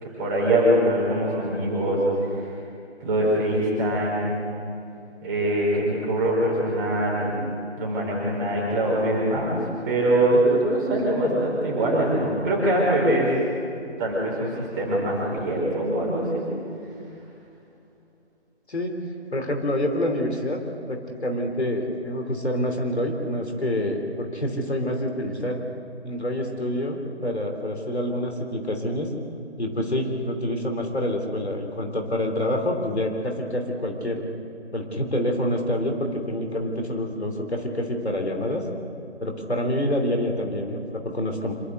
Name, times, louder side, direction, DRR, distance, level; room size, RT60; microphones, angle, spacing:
voice 1, 0.0-2.5 3.0-4.4 5.2-7.4 7.8-13.3 14.0-16.5, right 1 dB, 15° right, -4 dB, 4.9 m, -23 dB
voice 2, 19.3-20.6 20.9-25.6 26.0-29.1 29.6-34.2 34.7-38.6 39.2-41.5, left 1 dB, 65° left, 3 dB, 3.3 m, -27 dB
26.5 x 12.5 x 8.1 m, 2.6 s
figure-of-eight pair, 155°, 35 cm